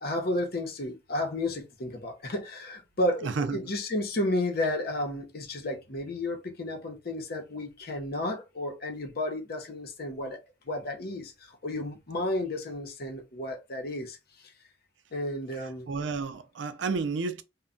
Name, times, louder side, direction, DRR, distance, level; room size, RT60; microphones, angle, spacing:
voice 1, 0.0-14.2 15.1-15.9, left 1 dB, 55° left, 0.8 m, -32 dB
voice 2, 3.2-3.6 15.9-17.4, right 4 dB, 75° right, 0.5 m, -31 dB
2.2 x 2.2 x 3.7 m
head